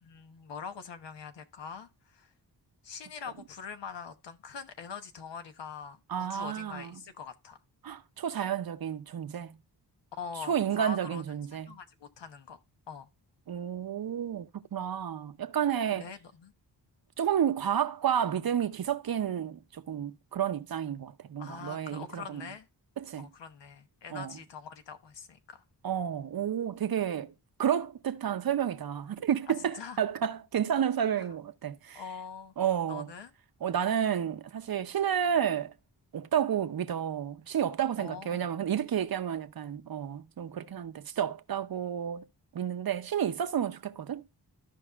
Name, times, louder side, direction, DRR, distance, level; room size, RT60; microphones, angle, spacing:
voice 1, 0.0-2.3 2.8-7.6 10.1-11.2 11.5-12.6 12.9-13.1 15.9-16.5 21.4-22.7 23.2-25.6 29.5-30.0 31.2-31.3 31.9-32.5 32.9-33.3 38.0-38.5, left 6 dB, 85° left, 1.1 m, -43 dB
voice 2, 6.1-6.9 7.8-9.6 10.5-11.8 13.5-16.1 17.2-22.4 23.0-23.3 24.1-24.3 25.8-27.3 27.6-32.0 32.6-33.1 33.6-35.7 36.1-42.2 42.5-44.2, right 9 dB, 60° right, 0.7 m, -31 dB
14.0 x 5.4 x 2.4 m
wide cardioid pair, 105°, 41 cm